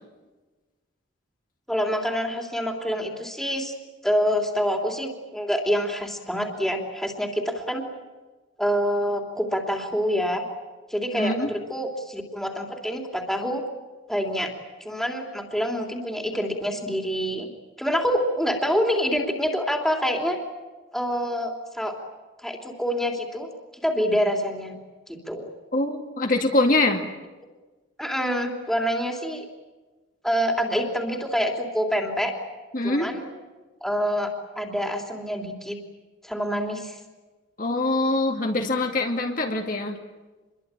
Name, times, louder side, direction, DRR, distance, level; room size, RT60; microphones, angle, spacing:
voice 1, 1.7-3.7 4.0-7.8 8.6-10.4 10.9-13.6 14.1-14.5 14.8-17.5 17.8-20.4 20.9-21.9 22.4-23.5 23.8-24.7 25.1-25.5 28.0-29.5 30.2-32.3 32.8-33.2 33.8-35.8 36.2-37.0, equal, ahead, 2 dB, 3.2 m, -26 dB
voice 2, 11.1-11.5 25.7-27.0 32.7-33.1 37.6-40.0, left 2 dB, 45° left, 2 dB, 2.2 m, -23 dB
27.0 x 22.5 x 9.0 m, 1.2 s
head